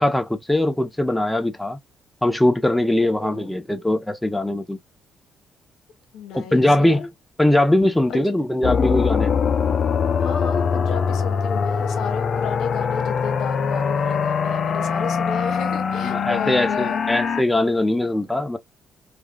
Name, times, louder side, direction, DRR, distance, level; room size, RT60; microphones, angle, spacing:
voice 1, 0.0-1.8 2.2-4.8 6.3-7.1 7.4-9.3 16.0-18.6, left 1 dB, 5° left, 0.6 m, -21 dB
voice 2, 3.0-3.6 6.1-7.1 8.1-8.3 10.2-17.0, left 7 dB, 80° left, 1.2 m, -33 dB
sound 1, 8.6-17.4, left 6 dB, 55° left, 0.5 m, -22 dB
3.4 x 2.2 x 2.3 m
cardioid pair, 90°, 0 cm